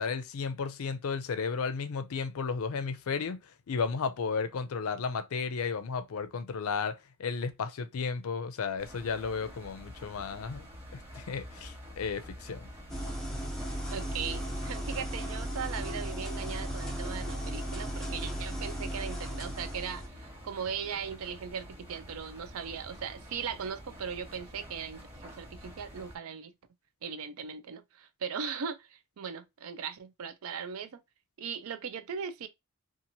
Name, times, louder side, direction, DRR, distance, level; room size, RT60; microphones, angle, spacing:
voice 1, 0.0-3.4 3.7-10.7 10.9-12.7, left 5 dB, 80° left, 0.4 m, -33 dB
Engine, 8.8-26.2, equal, 25° right, 1.4 m, -48 dB
sound 1, 12.9-20.1, equal, ahead, 0.6 m, -36 dB
voice 2, 13.9-20.0 20.4-26.5 27.0-31.0 31.4-32.5, right 6 dB, 80° right, 0.4 m, -38 dB
2.8 x 2.4 x 2.7 m
head